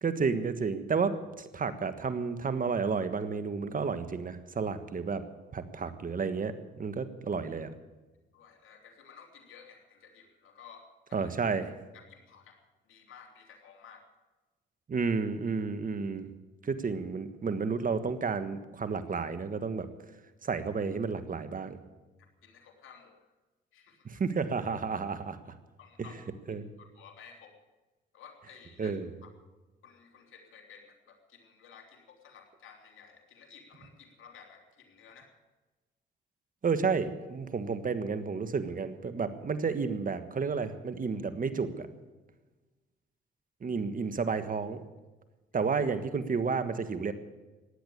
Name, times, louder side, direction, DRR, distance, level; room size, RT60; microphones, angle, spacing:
voice 1, 0.0-5.2 5.5-7.7 11.1-11.7 14.9-16.3 16.6-19.9 20.4-21.8 24.0-25.4 26.5-26.7 28.8-29.1 36.6-41.9 43.6-44.8 45.5-47.1, right 5 dB, 40° right, 11 dB, 1.6 m, -31 dB
voice 2, 8.3-11.3 11.9-14.1 22.4-23.3 23.7-24.1 25.8-26.3 26.8-27.6 28.1-29.0 29.2-29.3 29.8-35.3, left 6 dB, 75° left, 3 dB, 3.3 m, -54 dB
16.0 x 10.5 x 8.6 m, 1.2 s
supercardioid pair, 65°, 21 cm